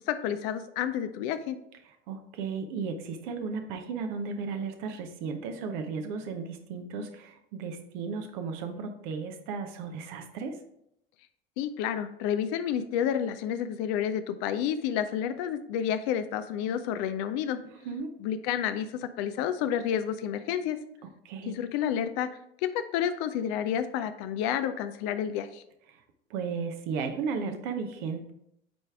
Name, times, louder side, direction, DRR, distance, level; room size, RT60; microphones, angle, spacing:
voice 1, 0.1-1.6 11.6-17.6 18.2-20.8 21.5-25.6, left 9 dB, 45° left, 11 dB, 0.5 m, -30 dB
voice 2, 2.1-10.6 17.8-18.1 21.2-21.5 25.9-26.0 26.3-28.3, right 5 dB, 50° right, 6 dB, 0.8 m, -35 dB
9.2 x 3.3 x 3.4 m, 0.77 s
figure-of-eight pair, 75°, 29 cm